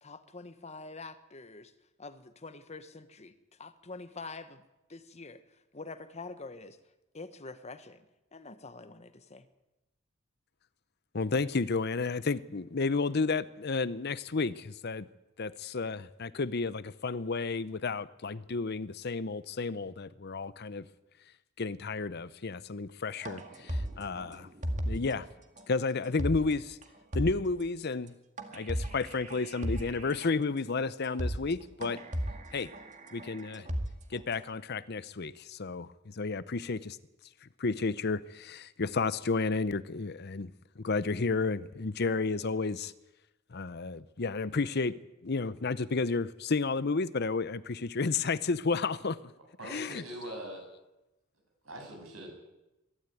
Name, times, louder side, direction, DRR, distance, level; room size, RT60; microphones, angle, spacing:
voice 1, 0.0-1.7 2.0-3.3 3.6-4.6 4.9-5.4 5.7-6.8 7.1-8.0 8.3-9.5, left 3 dB, 30° left, 1.2 m, -45 dB
voice 2, 11.1-15.1 15.4-20.8 21.6-24.5 24.9-25.3 25.7-26.8 27.1-28.1 28.5-32.0 32.5-32.7 33.1-33.7 34.1-37.0 37.6-40.5 40.8-42.9 43.5-49.2 49.6-50.0, left 4 dB, 50° left, 0.7 m, -32 dB
sound 1, 23.2-25.2 25.6-25.7 26.0-26.5 26.8-26.9 27.1-27.6 28.4-30.3 30.7-30.8 31.0-31.5 31.8-34.3, equal, 35° right, 2.1 m, -36 dB
voice 3, 49.6-50.6 51.6-52.3, right 1 dB, 80° right, 8.0 m, -42 dB
21.5 x 13.0 x 9.3 m
head